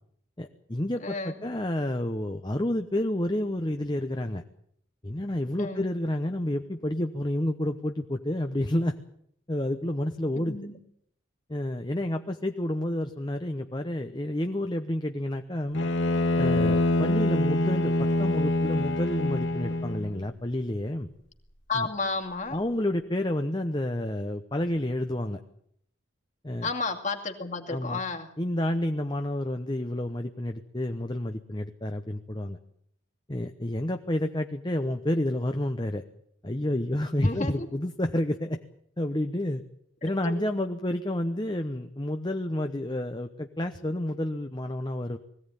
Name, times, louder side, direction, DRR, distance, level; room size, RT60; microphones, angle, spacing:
voice 1, 0.4-4.4 5.0-9.0 9.5-10.6 11.5-15.9 16.4-21.1 21.7-21.9 22.5-25.4 26.4-26.7 27.7-28.0 28.4-32.6 33.3-36.0 36.4-38.6 39.0-39.6 40.0-45.2, left 1 dB, 20° left, 7 dB, 1.0 m, -29 dB
voice 2, 1.0-1.3 5.6-5.9 10.4-10.8 21.7-22.6 26.6-28.3 37.2-37.7 40.2-40.3, left 3 dB, 35° left, 4 dB, 2.5 m, -32 dB
Bowed string instrument, 15.7-20.2, left 1 dB, 65° left, 2.6 m, -25 dB
21.0 x 16.5 x 9.9 m, 0.70 s
head